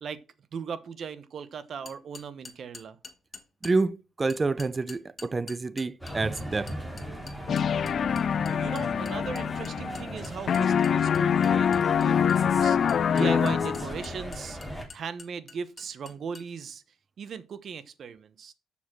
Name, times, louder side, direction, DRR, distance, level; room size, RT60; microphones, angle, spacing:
voice 1, 0.5-3.0 8.4-16.8 17.2-18.5, right 6 dB, 55° right, 1.0 m, -38 dB
sound 1, 1.9-3.7 4.3-16.5, left 4 dB, 35° left, 1.8 m, -47 dB
voice 2, 3.6-6.7, right 3 dB, 25° right, 0.6 m, -28 dB
sound 2, 6.0-14.9, right 1 dB, 5° right, 3.3 m, -38 dB
sound 3, 7.5-10.2 10.5-14.1, left 7 dB, 55° left, 0.4 m, -25 dB
7.2 x 6.5 x 5.9 m
cardioid pair, 90°, 0 cm